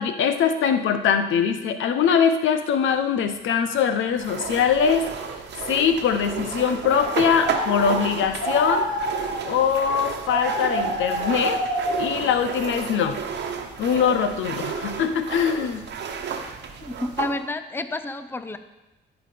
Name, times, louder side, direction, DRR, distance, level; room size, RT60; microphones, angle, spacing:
voice 1, 0.0-5.1 5.6-8.9 9.5-11.6 12.0-13.2 13.8-15.8, left 7 dB, 75° left, 9 dB, 0.9 m, -22 dB
sound 1, 4.2-17.4, right 6 dB, 60° right, 1.1 m, -32 dB
sound 2, 6.4-6.5 7.0-8.1 8.4-9.5 10.3-12.2, equal, 40° left, 4.1 m, -27 dB
voice 2, 16.8-18.6, left 2 dB, 10° left, 10 dB, 0.6 m, -30 dB
13.5 x 5.0 x 5.1 m, 0.99 s
cardioid pair, 90°, 20 cm